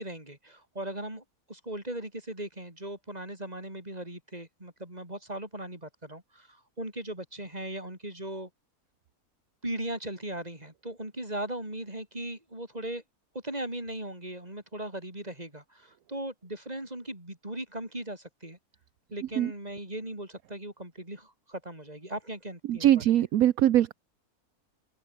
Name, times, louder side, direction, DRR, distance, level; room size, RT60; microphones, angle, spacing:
voice 1, 0.0-8.5 9.6-13.0 13.4-18.6 19.1-23.2, right 1 dB, 25° right, 5.8 m, -38 dB
voice 2, 22.7-23.9, right 12 dB, 70° right, 1.2 m, -22 dB
omnidirectional pair, 1.6 m